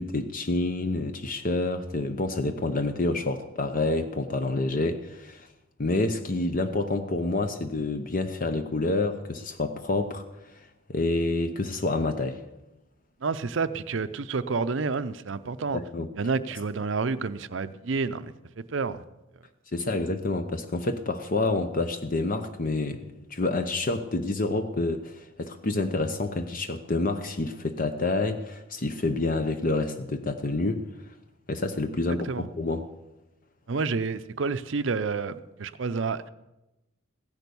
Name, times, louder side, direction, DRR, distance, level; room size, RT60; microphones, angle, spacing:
voice 1, 0.0-5.5 5.8-10.2 10.9-12.4 15.7-16.1 19.7-23.0 23.3-30.8 31.5-32.9, left 2 dB, 40° left, 8 dB, 0.7 m, -28 dB
voice 2, 13.2-15.8 16.2-19.0 32.2-32.5 33.7-36.2, right 4 dB, 65° right, 12 dB, 0.6 m, -29 dB
15.5 x 10.5 x 6.9 m, 0.97 s
head